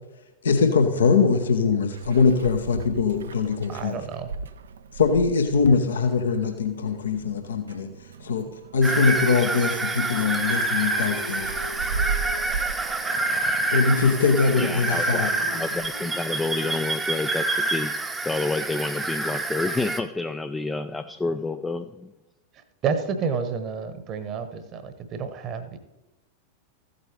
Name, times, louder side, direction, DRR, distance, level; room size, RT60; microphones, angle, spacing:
voice 1, 0.4-4.0 4.9-7.9 8.2-8.5 8.7-11.5 13.7-15.3, left 5 dB, 70° left, 6 dB, 0.9 m, -22 dB
Meow, 1.9-15.9, right 5 dB, 65° right, 0.5 m, -38 dB
voice 2, 3.7-4.3 13.1-13.5 22.8-25.8, right 6 dB, 35° right, 10 dB, 1.0 m, -30 dB
sound 1, 8.8-20.0, right 2 dB, 10° right, 0.8 m, -27 dB
Wind instrument woodwind instrument, 9.4-16.2 16.5-17.0, left 3 dB, 85° left, 3.0 m, -42 dB
voice 3, 14.6-18.0 18.2-22.1, left 3 dB, 10° left, 7 dB, 0.4 m, -29 dB
14.5 x 8.1 x 3.3 m, 1.0 s
figure-of-eight pair, 90°, 0 cm